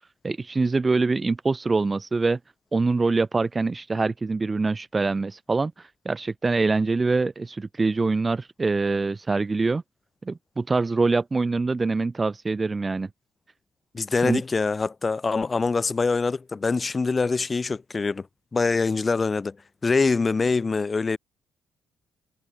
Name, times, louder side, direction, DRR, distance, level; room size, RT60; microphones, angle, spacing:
voice 1, 0.2-2.4 2.7-9.8 10.3-13.1 14.2-14.4, right 3 dB, 25° right, 1.5 m, -24 dB
voice 2, 13.9-18.3 18.5-19.6 19.8-21.2, left 4 dB, 30° left, 2.1 m, -24 dB
cardioid pair, 90°, 0 cm